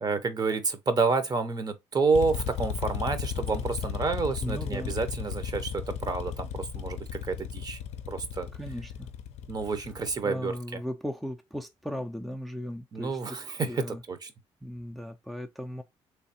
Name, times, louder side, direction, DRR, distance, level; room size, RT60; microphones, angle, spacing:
voice 1, 0.0-7.8 8.1-8.5 9.5-10.8 12.9-14.3, right 4 dB, 35° right, 0.8 m, -29 dB
sound 1, 2.1-10.2, left 8 dB, 70° left, 0.5 m, -35 dB
voice 2, 4.4-5.0 8.6-9.1 10.2-13.2 13.7-14.0 14.6-15.8, equal, ahead, 0.4 m, -37 dB
3.4 x 3.1 x 2.8 m
cardioid pair, 85°, 11 cm